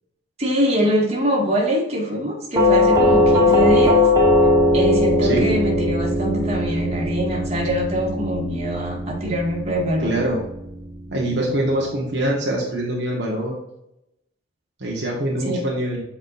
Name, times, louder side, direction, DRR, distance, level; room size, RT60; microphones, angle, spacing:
voice 1, 0.4-4.0 4.7-10.2 15.4-15.6, equal, 35° right, -3 dB, 2.0 m, -23 dB
Doorbell, 2.6-11.4, left 1 dB, 20° right, 1.3 m, -19 dB
voice 2, 10.0-10.4 11.1-13.6 14.8-16.0, right 1 dB, 60° right, -3 dB, 1.4 m, -23 dB
7.8 x 4.9 x 2.6 m, 0.83 s
head